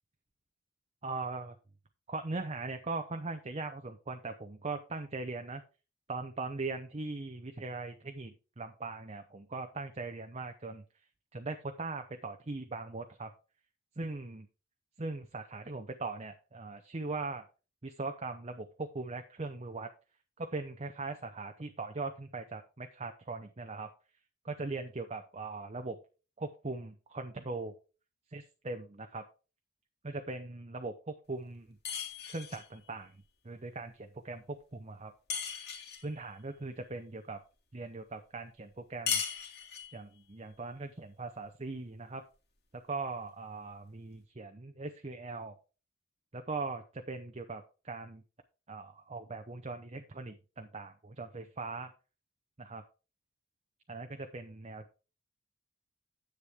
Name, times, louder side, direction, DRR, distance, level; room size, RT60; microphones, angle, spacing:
voice 1, 1.0-1.5 2.1-5.6 6.1-10.8 11.3-13.3 14.0-14.5 15.0-17.4 17.8-19.9 20.4-23.9 24.4-26.0 26.4-27.7 28.3-29.2 30.0-31.8 32.3-33.2 33.4-35.1 36.0-37.4 37.7-39.2 39.9-42.2 42.8-45.6 46.3-48.2 48.7-51.9 52.6-52.8 53.9-55.0, right 3 dB, 30° right, 6 dB, 0.7 m, -40 dB
sound 1, 31.8-32.7 35.3-36.1 39.1-40.0, left 6 dB, 50° left, 2.4 m, -36 dB
9.8 x 8.2 x 3.5 m, 0.33 s
head